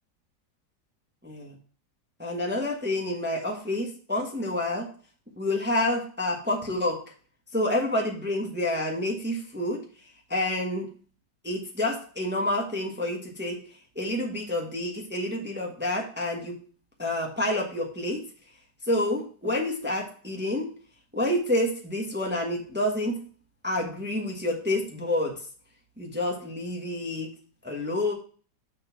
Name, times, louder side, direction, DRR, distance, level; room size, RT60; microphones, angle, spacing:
voice 1, 1.2-1.5 2.2-4.9 5.4-7.0 7.5-9.8 10.3-10.9 11.4-13.6 13.9-16.5 17.0-18.2 18.9-20.7 21.1-23.2 23.6-25.4 26.0-27.3 27.6-28.1, left 1 dB, 5° right, 0 dB, 1.2 m, -28 dB
6.3 x 4.3 x 5.9 m, 0.41 s
omnidirectional pair, 1.9 m